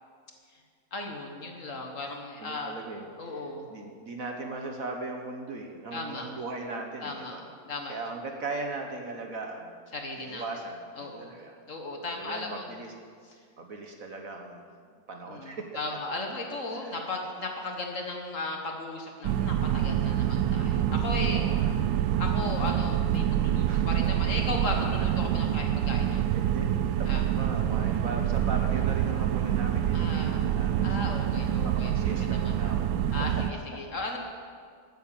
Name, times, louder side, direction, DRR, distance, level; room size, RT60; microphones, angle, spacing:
voice 1, 0.9-2.8 3.2-3.7 5.9-6.3 7.0-8.0 9.9-10.4 11.0-11.3 11.7-12.7 15.3-21.4 22.2-26.3 27.1-27.2 29.9-30.4 30.8-32.5 33.1-34.2, left 2 dB, 45° left, 2 dB, 1.6 m, -36 dB
voice 2, 2.4-7.4 7.9-9.7 10.2-11.6 12.0-12.9 13.6-14.6 15.1-15.7 16.8-16.9 21.3-21.7 23.7-23.9 26.3-26.7 27.0-32.9 33.7-34.2, right 3 dB, 55° right, 3 dB, 1.3 m, -39 dB
sound 1, 19.2-33.5, right 10 dB, 80° right, 1.3 m, -26 dB
12.0 x 9.3 x 7.5 m, 2.1 s
omnidirectional pair, 2.0 m